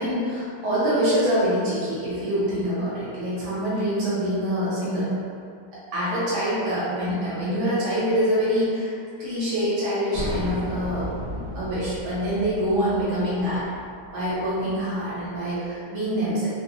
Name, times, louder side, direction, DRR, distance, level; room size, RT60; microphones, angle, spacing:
voice 1, 0.0-5.1 5.9-8.9 9.2-13.7 14.1-16.6, equal, 75° right, -10 dB, 1.6 m, -25 dB
sound 1, 10.1-15.4, equal, 60° right, 1.0 m, -35 dB
3.4 x 2.0 x 2.5 m, 2.4 s
omnidirectional pair, 1.8 m